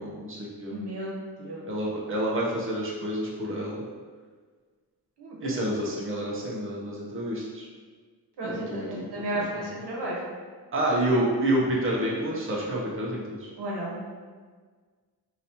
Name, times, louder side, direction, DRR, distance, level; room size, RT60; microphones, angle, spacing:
voice 1, 0.0-0.8 1.7-3.8 5.4-7.7 8.4-9.0 9.3-9.7 10.7-13.5, right 1 dB, 30° right, -4 dB, 0.9 m, -28 dB
voice 2, 0.7-1.7 5.2-5.7 8.4-10.2 13.6-14.0, right 1 dB, 85° right, -4 dB, 1.1 m, -34 dB
4.9 x 2.8 x 2.9 m, 1.5 s
wide cardioid pair, 95°, 39 cm